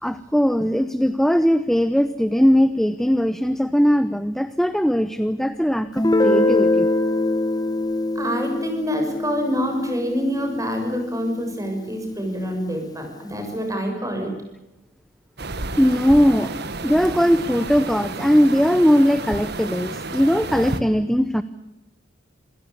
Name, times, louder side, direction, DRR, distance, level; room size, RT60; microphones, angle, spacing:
voice 1, 0.0-6.9 15.7-21.4, equal, ahead, 12 dB, 0.8 m, -19 dB
Guitar, 6.0-11.5, left 2 dB, 20° left, 1.7 m, -23 dB
voice 2, 8.2-14.3, equal, 20° right, 4 dB, 6.9 m, -26 dB
sound 1, 15.4-20.8, right 2 dB, 60° right, 1.8 m, -31 dB
27.0 x 17.0 x 8.5 m, 0.97 s
head